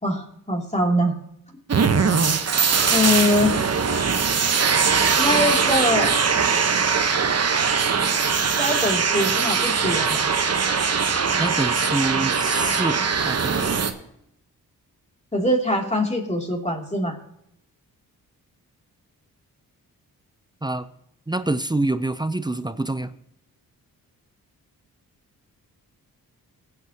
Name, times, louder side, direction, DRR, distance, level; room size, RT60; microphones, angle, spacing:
voice 1, 0.0-1.2 2.9-3.6 5.2-6.1 8.6-10.2 15.3-17.1, left 1 dB, 20° left, 1 dB, 2.9 m, -23 dB
sound 1, 1.7-13.9, right 5 dB, 45° right, 1.1 m, -21 dB
voice 2, 11.4-13.7 20.6-20.9 21.3-23.1, right 2 dB, 10° right, 12 dB, 0.6 m, -26 dB
19.0 x 8.2 x 2.9 m, 0.77 s
cardioid pair, 80°, 36 cm